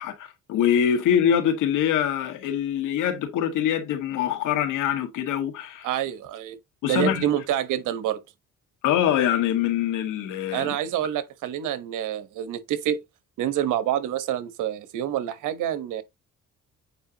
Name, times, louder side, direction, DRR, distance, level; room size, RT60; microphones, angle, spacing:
voice 1, 0.0-5.9 6.8-7.3 8.8-10.7, left 9 dB, 90° left, 1.9 m, -24 dB
voice 2, 5.8-6.6 6.8-8.2 10.5-13.0 13.4-16.0, right 11 dB, 85° right, 1.1 m, -27 dB
8.7 x 4.6 x 2.8 m
cardioid pair, 90°, 30 cm